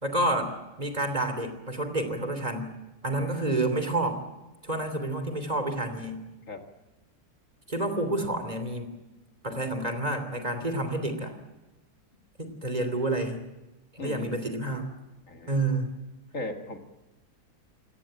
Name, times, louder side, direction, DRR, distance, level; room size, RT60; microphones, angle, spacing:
voice 1, 0.0-0.5 0.8-2.7 3.0-4.2 4.6-6.2 7.7-8.9 9.4-11.3 12.4-13.4 13.9-14.9 15.5-15.9, right 2 dB, 25° right, 8 dB, 3.2 m, -29 dB
voice 2, 3.1-3.4 6.5-6.6 14.0-14.4 15.3-15.6 16.3-16.8, left 3 dB, 55° left, 5 dB, 2.3 m, -37 dB
28.0 x 17.5 x 8.9 m, 1.1 s
omnidirectional pair, 1.7 m